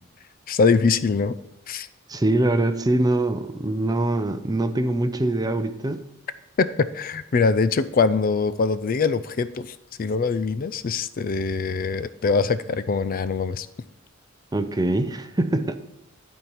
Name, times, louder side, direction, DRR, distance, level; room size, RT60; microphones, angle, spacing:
voice 1, 0.5-1.3 1.7-1.9 6.6-13.7, left 4 dB, 45° left, 14 dB, 0.4 m, -23 dB
voice 2, 2.1-6.0 14.5-15.7, right 2 dB, 20° right, 9 dB, 0.6 m, -23 dB
12.0 x 4.5 x 5.6 m, 0.92 s
head